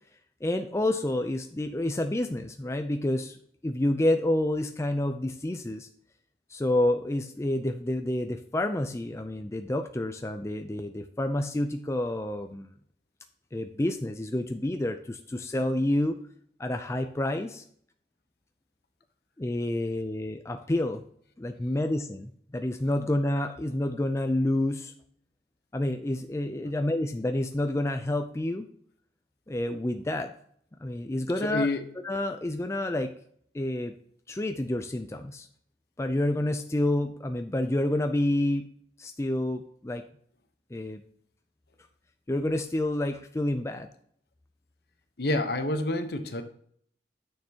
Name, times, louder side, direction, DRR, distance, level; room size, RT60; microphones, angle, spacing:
voice 1, 0.4-5.9 6.5-12.7 13.5-16.2 16.6-17.6 19.4-21.0 21.4-24.9 25.7-28.7 29.5-30.3 30.8-31.7 32.0-33.1 33.5-33.9 34.3-35.5 36.0-38.7 39.0-40.0 40.7-41.0 42.3-43.9, left 1 dB, 15° left, 6 dB, 0.4 m, -29 dB
voice 2, 31.4-31.8 45.2-46.4, left 2 dB, 60° left, 8 dB, 0.9 m, -28 dB
9.5 x 6.7 x 2.9 m, 0.62 s
head